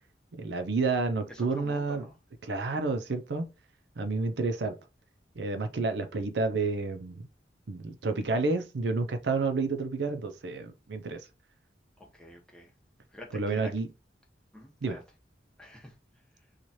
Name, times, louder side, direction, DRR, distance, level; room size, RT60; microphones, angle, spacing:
voice 1, 0.3-2.1 2.4-3.5 4.0-4.8 5.4-7.3 7.7-11.2 13.3-13.9 14.8-15.0, right 3 dB, 75° right, 0.6 m, -30 dB
voice 2, 1.3-2.1 12.0-12.7 13.1-13.7 14.5-15.0 15.6-15.9, left 1 dB, 5° left, 0.9 m, -46 dB
3.1 x 2.4 x 4.1 m
head